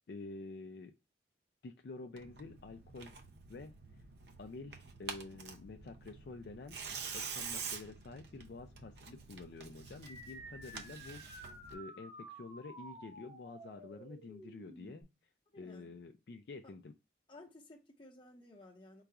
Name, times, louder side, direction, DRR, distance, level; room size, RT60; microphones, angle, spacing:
voice 1, 0.1-0.9 1.6-3.2 3.5-3.7 4.4-6.8 7.1-11.4 11.7-15.1 15.5-16.9, left 3 dB, 60° left, 0.4 m, -49 dB
Tearing, 2.2-11.8, right 5 dB, 65° right, 0.6 m, -47 dB
sound 1, 10.0-15.0, right 1 dB, 30° right, 0.9 m, -52 dB
voice 2, 15.5-15.9 16.6-16.7 17.3-19.0, left 2 dB, 25° left, 0.9 m, -56 dB
3.9 x 2.3 x 4.6 m
head